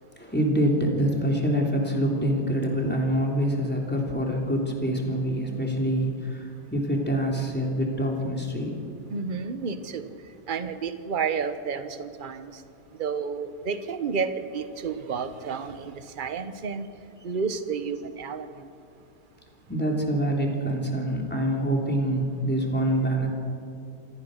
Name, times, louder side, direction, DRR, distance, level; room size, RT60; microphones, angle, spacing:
voice 1, 0.2-8.8 19.7-23.3, right 1 dB, 5° left, -1 dB, 3.2 m, -25 dB
voice 2, 9.1-10.1 10.5-12.6 12.9-16.9 17.2-18.7, right 5 dB, 35° right, 10 dB, 1.0 m, -31 dB
27.0 x 15.0 x 6.5 m, 2.5 s
omnidirectional pair, 1.7 m